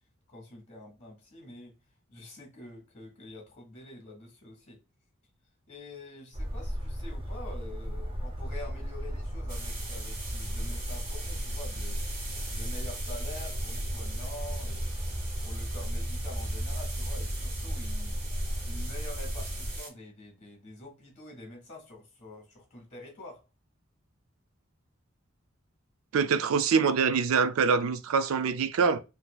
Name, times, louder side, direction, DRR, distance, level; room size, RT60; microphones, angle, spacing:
voice 1, 0.3-1.8 2.1-4.8 5.7-12.0 12.5-15.0 15.4-18.2 18.6-23.4, left 1 dB, 35° left, 1.6 m, -46 dB
sound 1, 6.3-19.8, equal, 25° right, 0.6 m, -34 dB
sound 2, 9.5-19.9, right 3 dB, 45° right, 1.4 m, -43 dB
voice 2, 26.1-29.0, right 5 dB, 90° right, 0.4 m, -25 dB
3.8 x 2.8 x 2.2 m
head